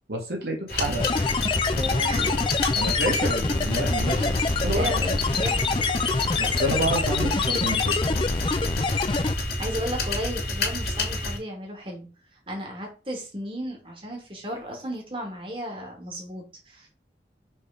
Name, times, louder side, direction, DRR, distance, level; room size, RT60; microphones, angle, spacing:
voice 1, 0.1-1.3 2.7-4.3 4.6-5.2 6.4-8.2, right 1 dB, 70° right, 0 dB, 1.7 m, -29 dB
sound 1, 0.7-11.4, left 2 dB, 60° left, 2.2 m, -30 dB
sound 2, 1.0-9.4, left 4 dB, 30° left, 0.4 m, -25 dB
voice 2, 1.7-2.3 4.1-4.5 4.7-5.9 9.3-12.1 12.5-16.9, equal, 30° right, 0 dB, 2.2 m, -34 dB
6.4 x 3.5 x 5.0 m, 0.33 s
head